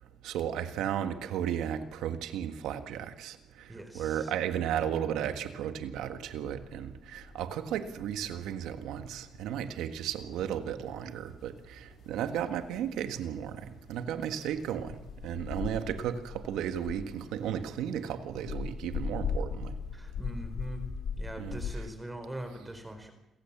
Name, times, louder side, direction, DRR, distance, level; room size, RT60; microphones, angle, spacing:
voice 1, 0.2-19.7 21.4-21.6, right 9 dB, 90° right, 9 dB, 1.7 m, -34 dB
voice 2, 3.7-4.3 19.9-20.9 21.2-23.1, right 1 dB, 10° right, 7 dB, 4.3 m, -42 dB
sound 1, 6.1-21.7, left 6 dB, 65° left, 2.7 m, -41 dB
27.5 x 16.0 x 7.4 m, 0.94 s
cardioid pair, 90°, 0 cm